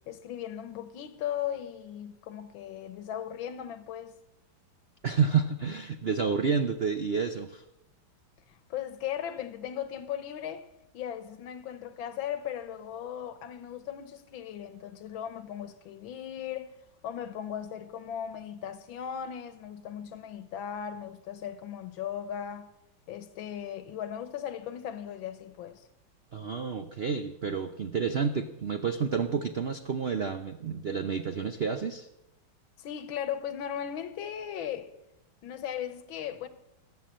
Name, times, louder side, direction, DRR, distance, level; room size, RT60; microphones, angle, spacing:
voice 1, 0.1-4.2 8.5-10.7 10.9-16.7 17.0-22.7 23.1-25.9 32.8-34.9 35.4-36.5, left 9 dB, 75° left, 1.8 m, -37 dB
voice 2, 5.0-7.6 26.3-32.1, right 6 dB, 90° right, 0.5 m, -29 dB
19.0 x 8.2 x 7.5 m
omnidirectional pair, 2.2 m